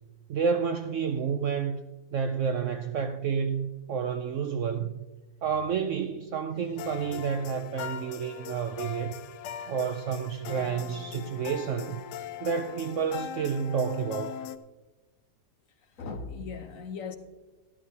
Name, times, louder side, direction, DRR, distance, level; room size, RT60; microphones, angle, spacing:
voice 1, 0.3-1.8 2.1-5.0 5.4-9.1 9.7-12.0 12.4-14.4, right 6 dB, 70° right, 0.7 m, -30 dB
voice 2, 6.5-7.2 15.8-17.2, left 5 dB, 60° left, 1.2 m, -40 dB
sound 1, 6.8-14.6, left 9 dB, 80° left, 1.2 m, -40 dB
13.0 x 12.5 x 2.8 m
omnidirectional pair, 1.8 m